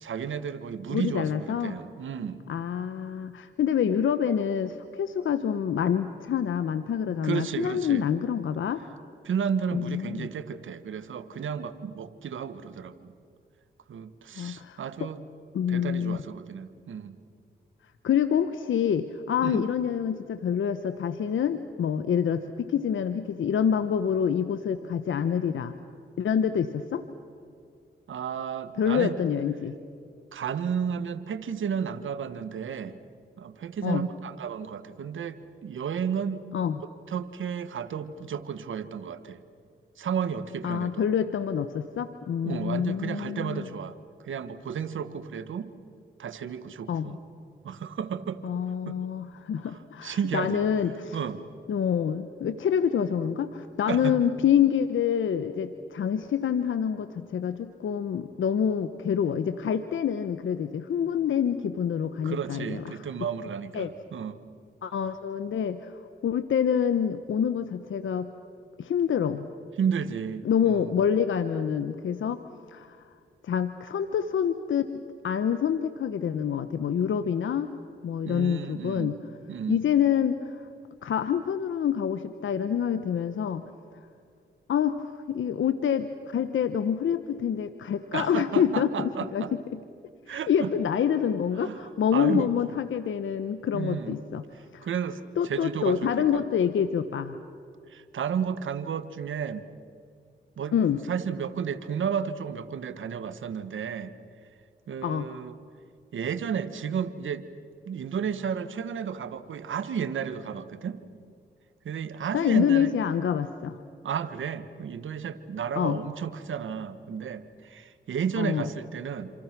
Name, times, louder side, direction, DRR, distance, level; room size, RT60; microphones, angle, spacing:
voice 1, 0.0-2.4 7.2-8.0 9.2-13.1 13.9-15.2 15.7-17.2 19.4-19.6 28.1-29.2 30.3-33.0 33.4-36.4 37.1-39.4 40.0-41.0 42.4-44.0 44.2-45.7 46.2-47.2 47.6-48.4 48.8-49.0 49.6-51.4 53.9-54.2 62.2-64.4 69.8-71.0 78.3-79.1 79.5-79.8 88.1-89.5 90.3-90.7 91.6-91.8 92.1-92.8 93.7-94.2 94.6-96.4 97.9-99.6 100.6-100.7 101.1-104.1 104.9-105.5 106.1-107.4 107.8-111.0 111.8-112.9 114.0-119.3, right 7 dB, 75° right, 12 dB, 1.5 m, -32 dB
voice 2, 0.9-1.7 2.5-8.8 9.7-10.3 14.4-15.1 15.5-16.2 18.0-25.7 26.2-27.0 28.8-29.7 33.8-34.0 36.5-36.8 40.6-43.7 46.9-47.2 48.4-51.2 51.7-63.0 63.7-63.9 64.8-65.9 66.2-68.3 68.8-69.5 70.4-72.4 72.7-73.0 73.4-77.7 78.0-79.2 79.7-80.7 81.0-83.6 84.7-89.8 90.3-94.4 94.7-94.9 95.4-97.4 100.7-101.0 105.0-105.3 112.3-113.8 115.8-116.0 118.4-118.6, left 8 dB, 75° left, 11 dB, 1.1 m, -27 dB
28.0 x 27.0 x 6.2 m, 2.4 s
cardioid pair, 55°, 20 cm